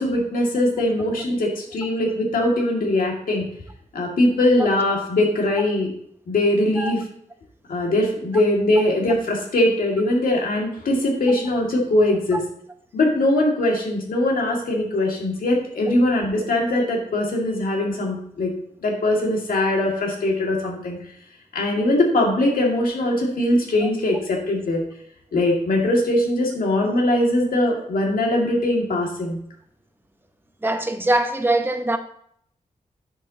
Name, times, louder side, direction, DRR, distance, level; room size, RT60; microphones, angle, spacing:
voice 1, 0.0-3.4 3.9-5.9 6.3-7.0 7.7-12.4 12.9-18.5 18.8-21.0 21.5-24.8 25.3-29.4, left 1 dB, 85° left, 2.2 m, -21 dB
voice 2, 30.6-32.0, right 2 dB, 15° right, 0.9 m, -22 dB
10.0 x 7.7 x 2.9 m
wide cardioid pair, 110°, 14 cm